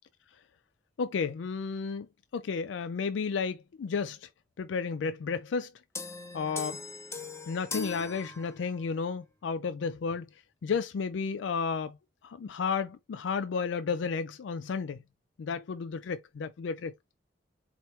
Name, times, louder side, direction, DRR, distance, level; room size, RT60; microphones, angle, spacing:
voice 1, 1.0-2.1 2.3-4.3 4.6-5.7 6.3-6.8 7.5-10.3 10.6-12.0 12.2-15.0 15.4-16.9, left 5 dB, 80° left, 0.4 m, -32 dB
sound 1, 5.9-8.9, left 3 dB, 15° left, 0.7 m, -40 dB
4.4 x 3.0 x 3.1 m
head